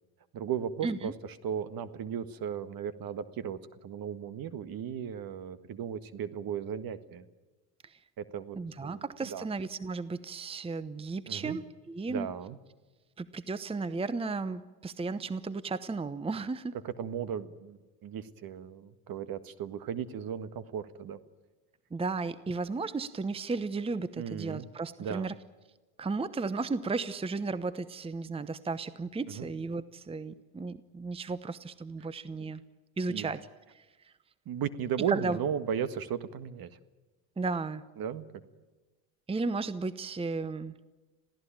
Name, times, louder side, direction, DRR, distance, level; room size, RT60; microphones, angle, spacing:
voice 1, 0.3-1.1 1.4-7.3 8.2-9.5 11.3-11.6 12.1-12.6 16.8-21.2 24.2-24.7 25.0-25.3 29.3-29.5 32.4-32.5 33.1-33.3 34.5-36.7 38.0-38.3, right 8 dB, 50° right, 13 dB, 1.7 m, -36 dB
voice 2, 8.6-12.3 13.2-16.8 21.9-25.3 26.0-32.6 33.0-33.4 33.7-34.1 35.1-35.4 37.4-37.8 39.3-40.7, right 3 dB, 10° right, 15 dB, 0.9 m, -34 dB
27.0 x 16.5 x 8.9 m, 1.2 s
hypercardioid pair, 80°, 46 cm